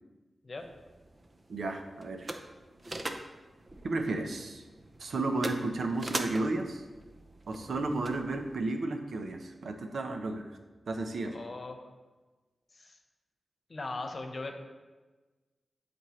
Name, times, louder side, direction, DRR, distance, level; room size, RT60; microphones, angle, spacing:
sound 1, 0.6-8.6, right 2 dB, 35° right, 0.6 m, -43 dB
voice 1, 1.5-2.4 3.8-4.6 5.0-6.8 7.5-10.5 10.9-11.4, right 2 dB, 80° right, 5 dB, 0.8 m, -33 dB
voice 2, 11.2-11.8 12.7-13.0 13.7-14.6, left 3 dB, 50° left, 4 dB, 1.0 m, -39 dB
11.5 x 4.4 x 3.2 m, 1.2 s
cardioid pair, 65°, 0 cm